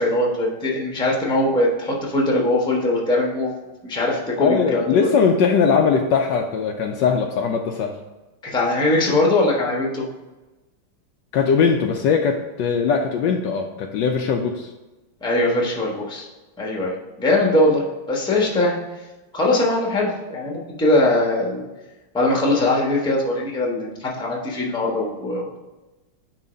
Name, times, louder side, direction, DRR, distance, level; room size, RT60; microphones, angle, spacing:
voice 1, 0.0-3.5 3.8-5.0 8.4-10.0 15.2-16.3 16.6-18.7 19.3-21.6 22.1-25.6, left 2 dB, 5° left, -2 dB, 0.8 m, -21 dB
voice 2, 4.4-8.0 11.3-14.7, left 6 dB, 75° left, 3 dB, 1.1 m, -20 dB
9.1 x 3.1 x 5.1 m, 1.1 s
omnidirectional pair, 2.2 m